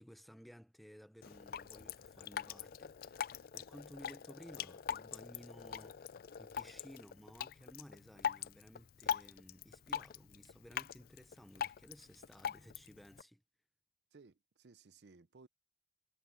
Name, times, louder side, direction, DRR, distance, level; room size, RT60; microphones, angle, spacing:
voice 1, 0.0-13.4, equal, ahead, 0.6 m, -57 dB
Drip, 1.2-13.2, left 8 dB, 55° left, 0.4 m, -43 dB
voice 2, 14.1-15.5, right 4 dB, 65° right, 0.6 m, -60 dB
head